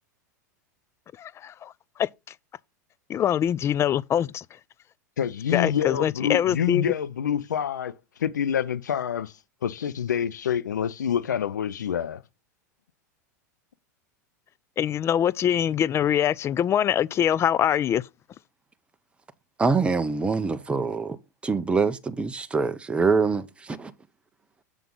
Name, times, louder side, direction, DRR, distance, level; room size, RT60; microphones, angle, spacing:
voice 1, 1.2-1.7 2.0-2.1 3.1-4.4 5.5-6.9 14.8-18.1, left 10 dB, 30° left, 0.4 m, -23 dB
voice 2, 5.2-12.2, left 9 dB, 80° left, 0.5 m, -27 dB
voice 3, 19.6-21.2 21.4-23.9, right 4 dB, 10° right, 0.6 m, -24 dB
6.9 x 6.0 x 3.8 m
hypercardioid pair, 95°, 9 cm